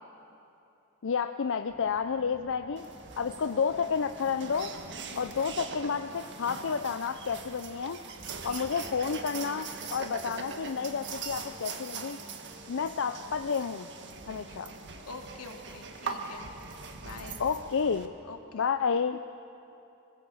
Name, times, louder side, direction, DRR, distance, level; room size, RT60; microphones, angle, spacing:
voice 1, 1.0-2.9 3.2-4.7 5.2-8.0 8.4-12.2 12.7-13.9 14.3-14.7 17.4-18.1 18.5-19.2, left 6 dB, 60° left, 9 dB, 0.6 m, -30 dB
sound 1, 1.7-18.2, right 1 dB, 25° right, 2.1 m, -53 dB
sound 2, 2.8-18.1, right 5 dB, 55° right, 1.7 m, -42 dB
voice 2, 3.3-3.8 5.1-5.4 8.5-8.9 9.1-9.3 15.1-16.5 17.0-17.4 18.3-18.6, left 3 dB, 85° left, 3 dB, 2.5 m, -46 dB
26.5 x 20.0 x 7.8 m, 2.8 s
head